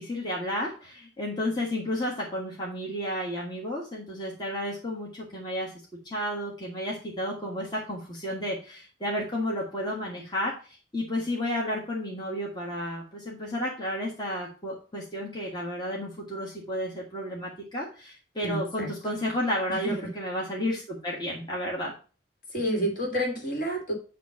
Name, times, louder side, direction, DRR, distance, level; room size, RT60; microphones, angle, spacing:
voice 1, 0.0-5.7 6.0-10.5 10.9-21.9, left 1 dB, 25° left, -3 dB, 1.5 m, -32 dB
voice 2, 18.4-18.9 19.7-19.9 22.5-23.9, equal, 50° left, 1 dB, 2.2 m, -29 dB
9.2 x 3.1 x 5.8 m, 0.36 s
head